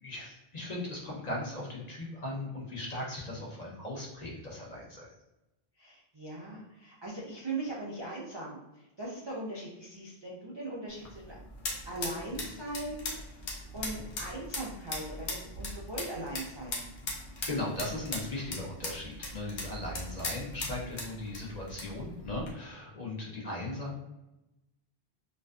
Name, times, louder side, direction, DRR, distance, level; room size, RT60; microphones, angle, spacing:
voice 1, 0.0-5.1 17.2-24.0, left 2 dB, 50° left, -3 dB, 0.6 m, -38 dB
voice 2, 5.8-11.4 11.9-16.8, right 2 dB, 50° right, -5 dB, 0.3 m, -40 dB
sound 1, 10.9-22.5, left 2 dB, 75° left, 0.9 m, -40 dB
2.4 x 2.4 x 2.2 m, 0.97 s
omnidirectional pair, 1.0 m